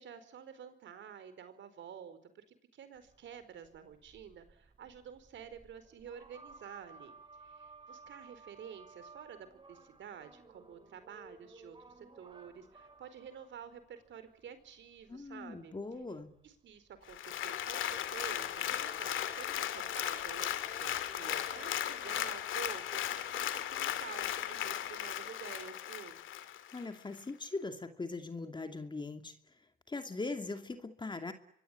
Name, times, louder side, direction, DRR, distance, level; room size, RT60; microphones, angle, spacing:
voice 1, 0.0-7.1 7.4-15.7 16.4-26.2, right 8 dB, 70° right, 12 dB, 4.5 m, -50 dB
sound 1, 3.0-22.3, right 3 dB, 25° right, 5.0 m, -57 dB
voice 2, 15.1-16.4 26.7-29.3 29.9-31.3, left 3 dB, 25° left, 7 dB, 2.6 m, -40 dB
Applause, 17.1-26.8 27.3-27.4, left 11 dB, 80° left, 2.5 m, -37 dB
25.0 x 21.5 x 10.0 m, 0.73 s
cardioid pair, 90°, 20 cm